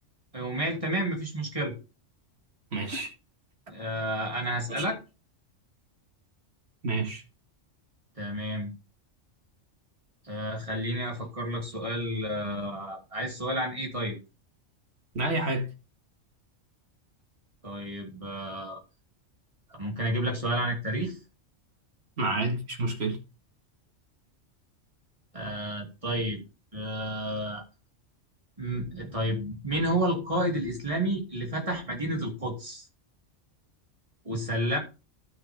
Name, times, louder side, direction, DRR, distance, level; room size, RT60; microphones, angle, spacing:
voice 1, 0.3-1.7 3.7-5.0 8.2-8.8 10.2-14.2 17.6-18.8 19.7-21.2 22.3-22.4 25.3-26.4 26.7-27.6 28.6-32.9 34.2-34.8, right 1 dB, 25° right, 3.0 m, -31 dB
voice 2, 2.7-3.1 4.7-4.8 6.8-7.2 15.1-15.7 22.2-23.2, right 2 dB, 55° right, 2.3 m, -29 dB
12.0 x 6.4 x 3.6 m
omnidirectional pair, 1.3 m